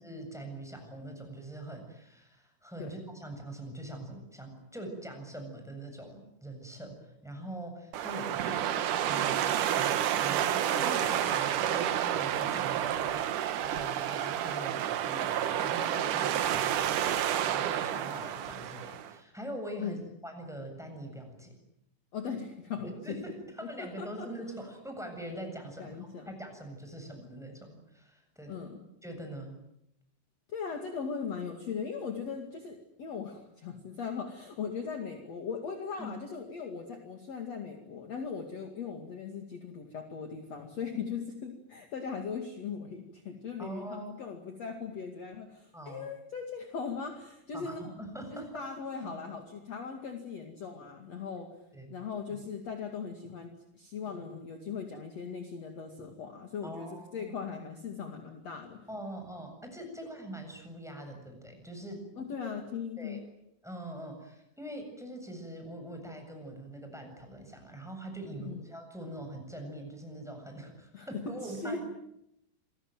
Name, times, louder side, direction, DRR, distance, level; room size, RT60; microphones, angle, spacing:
voice 1, 0.0-13.3 13.5-20.0 20.2-21.5 23.0-26.0 26.3-28.7 29.0-29.5 36.0-36.1 40.9-41.0 43.6-44.2 45.7-46.1 47.5-48.5 49.0-49.4 51.7-51.9 56.6-57.3 58.9-62.0 63.0-63.2 63.6-71.8, right 1 dB, ahead, 4 dB, 7.3 m, -43 dB
sound 1, 7.9-19.1, right 10 dB, 65° right, 2.5 m, -30 dB
voice 2, 22.1-23.2 23.6-24.3 25.8-26.3 28.5-28.8 30.5-48.0 48.3-51.5 51.9-58.9 62.2-63.2 68.4-68.7 70.9-71.8, left 6 dB, 45° left, 4 dB, 3.1 m, -39 dB
28.0 x 22.0 x 9.4 m, 0.81 s
omnidirectional pair, 4.4 m